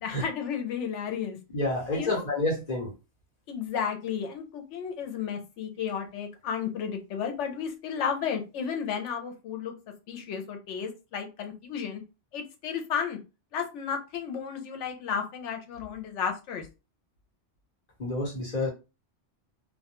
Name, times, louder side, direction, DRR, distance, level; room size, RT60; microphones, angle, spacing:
voice 1, 0.0-1.4 1.9-2.2 3.5-9.7 10.1-12.0 12.3-13.2 13.5-16.7, left 7 dB, 85° left, 5 dB, 0.9 m, -33 dB
voice 2, 1.5-2.9 18.0-18.7, left 2 dB, 35° left, -1 dB, 1.0 m, -29 dB
2.2 x 2.2 x 2.9 m, 0.29 s
omnidirectional pair, 1.2 m